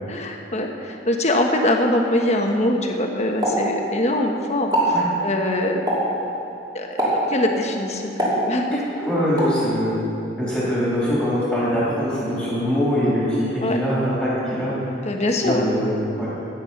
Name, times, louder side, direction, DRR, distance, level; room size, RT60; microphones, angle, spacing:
voice 1, 0.1-5.0 5.2-5.8 6.7-8.8 13.6-13.8 15.0-15.7, left 1 dB, 35° left, 2 dB, 1.2 m, -23 dB
Explosion, 3.4-4.3 4.6-5.0 5.9-6.2 7.0-7.4 8.2-8.9 9.4-9.6, right 1 dB, 20° right, 2.9 m, -22 dB
voice 2, 8.7-9.9 10.4-14.9 15.3-16.3, equal, 5° right, -9 dB, 3.1 m, -23 dB
15.0 x 9.3 x 5.8 m, 2.8 s
head